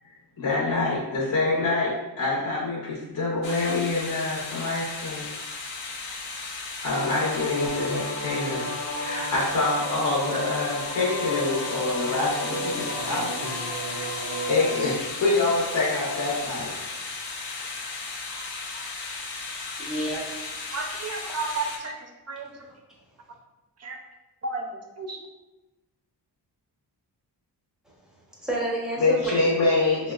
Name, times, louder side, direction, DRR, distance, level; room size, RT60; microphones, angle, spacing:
voice 1, 0.4-5.3 6.2-6.3 6.8-16.7 18.3-18.8 29.0-30.1, left 3 dB, 45° left, -6 dB, 0.7 m, -26 dB
sound 1, 3.4-21.8, left 4 dB, 90° left, 0.7 m, -35 dB
sound 2, 6.9-14.9, equal, 75° left, 1.1 m, -33 dB
voice 2, 19.8-21.0 28.4-29.4, right 1 dB, ahead, -5 dB, 0.7 m, -30 dB
voice 3, 20.7-22.7 23.8-24.0 24.4-24.7 25.0-25.2, right 3 dB, 40° right, 2 dB, 0.4 m, -33 dB
4.9 x 2.1 x 2.3 m, 1.1 s
wide cardioid pair, 160°, 41 cm